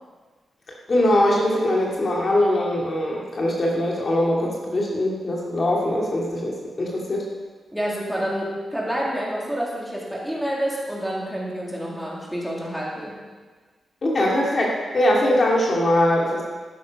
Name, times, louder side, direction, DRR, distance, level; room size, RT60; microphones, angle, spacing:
voice 1, 0.9-7.2 14.0-16.4, left 1 dB, 45° left, -2 dB, 2.4 m, -21 dB
voice 2, 7.7-13.1, equal, 5° right, -4 dB, 3.2 m, -28 dB
12.0 x 9.5 x 5.2 m, 1.4 s
cardioid pair, 90°, 0 cm